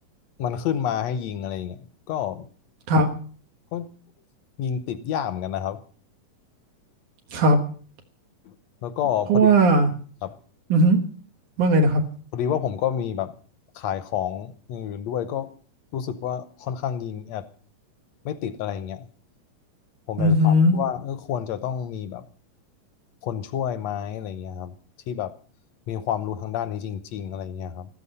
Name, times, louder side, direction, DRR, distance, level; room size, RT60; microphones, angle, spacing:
voice 1, 0.4-2.5 3.7-3.9 4.6-5.8 8.5-8.6 8.8-9.5 10.2-10.4 12.3-13.3 13.8-15.5 15.9-17.5 18.3-19.1 20.1-22.2 23.2-24.7 25.1-25.3 25.9-27.9, left 9 dB, 70° left, 12 dB, 1.8 m, -29 dB
voice 2, 9.3-9.9 10.7-11.0 11.6-12.0 20.2-20.8, right 1 dB, 70° right, 4 dB, 2.8 m, -17 dB
14.5 x 14.0 x 5.4 m, 0.43 s
omnidirectional pair, 3.8 m